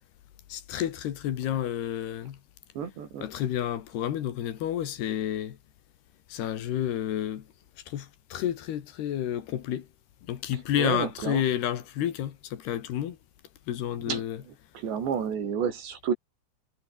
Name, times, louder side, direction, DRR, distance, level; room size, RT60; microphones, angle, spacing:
voice 1, 0.5-2.4 3.2-5.6 6.3-7.5 7.9-9.9 10.3-13.2 13.7-14.4, left 11 dB, 70° left, 3.9 m, -30 dB
voice 2, 2.8-3.3 10.8-11.4 14.1-14.2 14.7-16.1, right 7 dB, 85° right, 6.4 m, -30 dB
omnidirectional pair, 4.9 m